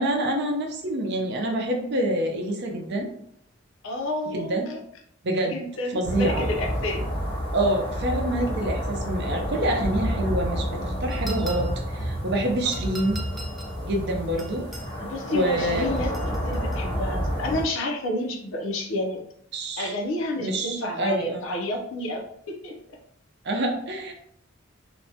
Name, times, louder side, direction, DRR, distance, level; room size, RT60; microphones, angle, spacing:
voice 1, 0.0-3.1 4.3-4.6 5.2-5.6 5.9-6.4 7.5-13.2 13.8-14.6 15.3-15.9 19.5-19.9 20.3-21.4 23.4-24.1, right 1 dB, 55° right, 2 dB, 0.5 m, -26 dB
voice 2, 3.8-4.8 5.4-7.0 15.0-16.1 16.4-19.2 19.8-23.0, left 1 dB, 75° left, 2 dB, 0.5 m, -30 dB
sound 1, 6.0-17.6, equal, 30° left, 0.7 m, -29 dB
sound 2, 11.1-11.9 12.7-13.8 14.4-14.9 16.0-16.9, right 2 dB, ahead, 0.3 m, -41 dB
2.6 x 2.1 x 2.7 m, 0.69 s
head